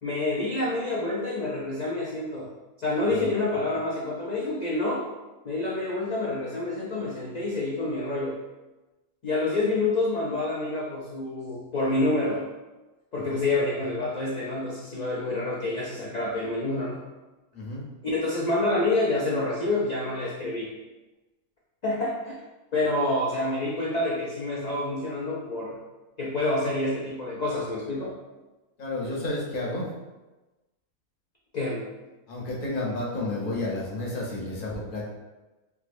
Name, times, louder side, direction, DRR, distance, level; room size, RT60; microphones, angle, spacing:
voice 1, 0.0-2.5 2.8-5.1 5.4-8.4 9.2-12.4 13.1-17.0 18.0-20.7 21.8-22.4 22.7-25.8 26.2-28.1 31.5-31.9, left 2 dB, 80° left, -5 dB, 0.3 m, -27 dB
voice 2, 28.8-29.9 32.3-35.1, left 2 dB, 45° left, -4 dB, 0.8 m, -31 dB
3.4 x 2.9 x 2.5 m, 1.1 s
omnidirectional pair, 1.4 m